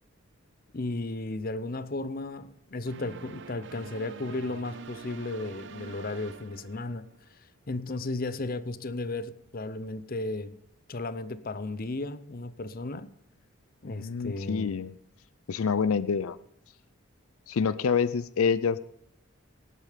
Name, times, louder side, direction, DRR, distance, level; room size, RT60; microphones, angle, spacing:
voice 1, 0.7-7.1 7.7-10.6 10.9-13.1 13.8-14.8, left 2 dB, 40° left, 0.7 m, -34 dB
sound 1, 2.9-7.3, right 5 dB, 55° right, 0.6 m, -45 dB
voice 2, 13.8-14.9 15.5-16.4 17.5-18.8, left 6 dB, 75° left, 0.5 m, -27 dB
18.5 x 8.5 x 5.1 m
head